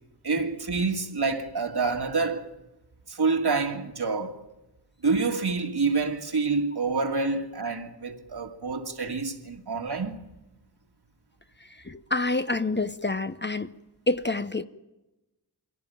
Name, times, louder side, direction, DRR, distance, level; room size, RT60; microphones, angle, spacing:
voice 1, 0.2-2.5 3.1-4.4 5.0-10.2, right 4 dB, 65° right, 2.2 m, -27 dB
voice 2, 11.9-13.7 14.1-14.6, left 2 dB, 25° left, 0.8 m, -27 dB
23.5 x 17.0 x 9.3 m
cardioid pair, 40°, 42 cm